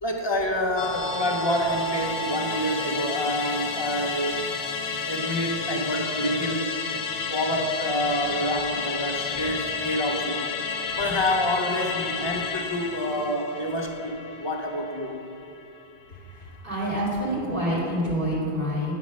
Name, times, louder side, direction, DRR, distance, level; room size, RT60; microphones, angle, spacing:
voice 1, 0.0-4.4 5.1-6.7 7.3-10.4 10.9-15.2, left 1 dB, 40° left, 0 dB, 0.4 m, -27 dB
Musical instrument, 0.8-15.4 15.8-15.9, left 4 dB, 85° left, 0.9 m, -31 dB
voice 2, 16.3-18.9, equal, 50° right, -9 dB, 1.9 m, -27 dB
8.9 x 3.1 x 6.1 m, 2.7 s
omnidirectional pair, 1.1 m